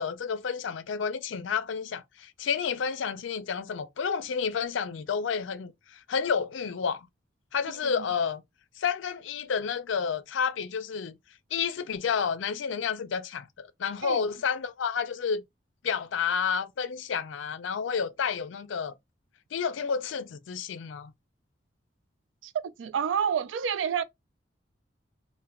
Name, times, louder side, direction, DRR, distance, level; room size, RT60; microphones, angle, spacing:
voice 1, 0.0-7.1 7.5-8.4 8.8-11.2 11.5-15.4 15.8-18.9 19.5-21.1, left 6 dB, 80° left, 0.4 m, -30 dB
voice 2, 7.7-8.1 14.0-14.3 22.4-22.5 22.8-24.0, right 7 dB, 80° right, 0.3 m, -29 dB
2.3 x 2.2 x 3.3 m
head